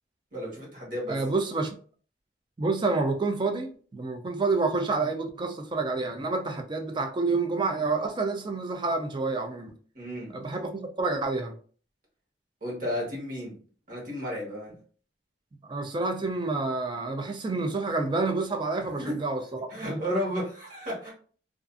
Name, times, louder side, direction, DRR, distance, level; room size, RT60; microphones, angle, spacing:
voice 1, 0.3-1.2 9.9-10.3 12.6-13.5 13.9-14.7 19.0-19.1 19.7-21.1, equal, 45° right, 1.1 m, -33 dB
voice 2, 1.1-1.7 2.6-9.7 10.3-11.5 15.6-19.4 19.8-20.2, right 3 dB, 25° right, 0.3 m, -28 dB
2.4 x 2.4 x 2.4 m
head